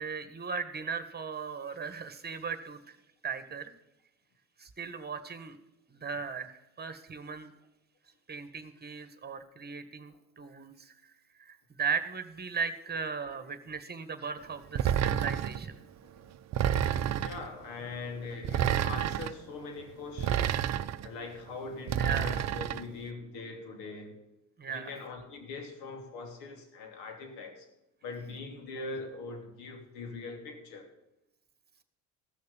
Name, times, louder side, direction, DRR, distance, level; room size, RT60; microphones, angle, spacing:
voice 1, 0.0-3.0 3.2-3.7 4.6-5.6 5.9-7.5 8.3-10.9 11.4-15.8 22.0-22.4 24.6-24.9, right 6 dB, 25° right, 10 dB, 1.7 m, -37 dB
sound 1, 14.8-15.6 16.5-17.4 18.4-19.3 20.2-21.1 21.9-22.8, right 10 dB, 40° right, 0.7 m, -29 dB
voice 2, 17.2-20.6 21.0-24.1 24.7-27.7 28.0-30.9, left 3 dB, 70° left, 4 dB, 3.0 m, -42 dB
15.5 x 6.6 x 7.0 m, 0.89 s
hypercardioid pair, 70°, 41 cm